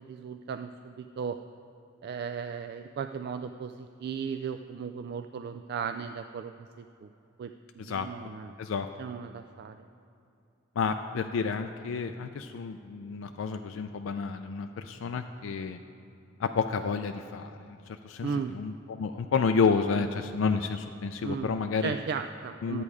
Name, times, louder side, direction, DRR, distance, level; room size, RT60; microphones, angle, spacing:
voice 1, 0.0-1.4 2.0-7.1 7.4-8.5 9.0-9.8 18.2-18.6 21.2-21.5 21.8-22.8, right 6 dB, 55° right, 8 dB, 0.3 m, -36 dB
voice 2, 10.8-15.8 16.4-17.8 18.0-21.9 22.6-22.8, left 5 dB, 75° left, 6 dB, 0.4 m, -30 dB
11.0 x 8.4 x 4.8 m, 2.8 s
head